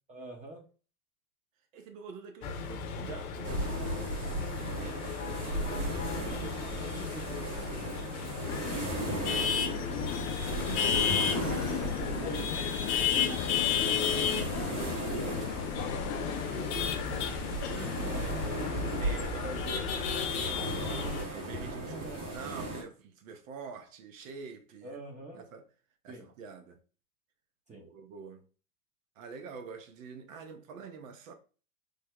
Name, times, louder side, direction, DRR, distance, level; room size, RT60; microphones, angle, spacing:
voice 1, 0.1-0.6 6.5-12.7 14.8-15.7 16.0-16.6 17.7-18.8 21.9-22.2 24.8-25.4 26.1-26.3 27.7-27.9, right 2 dB, 15° right, 0.7 m, -47 dB
voice 2, 1.7-3.6 4.0-7.2 10.8-11.3 12.1-12.7 13.1-14.1 17.7-17.9 18.9-22.1 22.3-25.0 25.3-25.6 26.0-26.8 27.7-28.4 29.2-31.3, right 5 dB, 60° right, 0.8 m, -46 dB
sound 1, 2.4-21.2, left 7 dB, 75° left, 0.7 m, -34 dB
sound 2, 3.4-22.8, right 2 dB, 85° right, 1.8 m, -37 dB
sound 3, 8.5-20.3, left 7 dB, 35° left, 0.4 m, -38 dB
3.4 x 2.1 x 3.6 m
hypercardioid pair, 95°, 44 cm